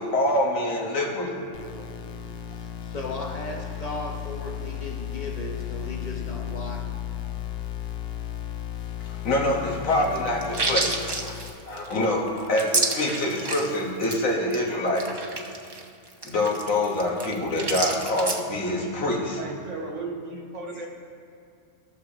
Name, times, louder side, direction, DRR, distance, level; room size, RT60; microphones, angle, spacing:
voice 1, 0.0-1.4 9.1-11.4 11.7-15.3 16.2-19.4, left 1 dB, 85° left, -2 dB, 1.7 m, -26 dB
sound 1, 1.5-11.5, left 11 dB, 60° left, 0.7 m, -35 dB
voice 2, 2.5-6.9, left 1 dB, 30° left, 0 dB, 1.0 m, -36 dB
sound 2, 10.0-13.8 14.0-14.2 14.5-14.6 14.9-18.4, right 3 dB, 35° right, 0.4 m, -29 dB
voice 3, 19.4-20.9, right 3 dB, 70° right, 0 dB, 1.3 m, -35 dB
16.5 x 6.5 x 2.9 m, 2.3 s
omnidirectional pair, 1.3 m